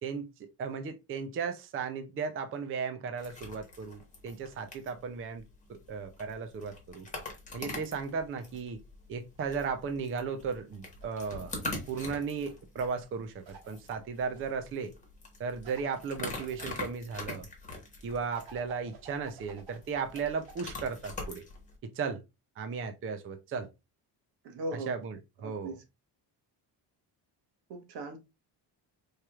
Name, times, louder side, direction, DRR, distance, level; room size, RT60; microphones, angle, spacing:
voice 1, 0.0-5.4 5.9-7.1 7.5-8.8 9.1-11.5 11.9-14.9 15.4-17.5 18.0-21.4 21.8-22.2 22.6-23.7 24.9-25.2 25.4-25.7, right 5 dB, 30° right, 0.4 m, -35 dB
sound 1, 3.2-21.7, left 2 dB, 15° left, 1.3 m, -44 dB
sound 2, 11.0-12.4 13.4-14.4 15.6-16.9 18.3-20.7, right 5 dB, 80° right, 1.5 m, -54 dB
voice 2, 24.4-24.9 25.4-25.8 27.7-28.2, right 2 dB, 60° right, 1.2 m, -38 dB
4.7 x 3.0 x 2.3 m
cardioid pair, 145°, 45 cm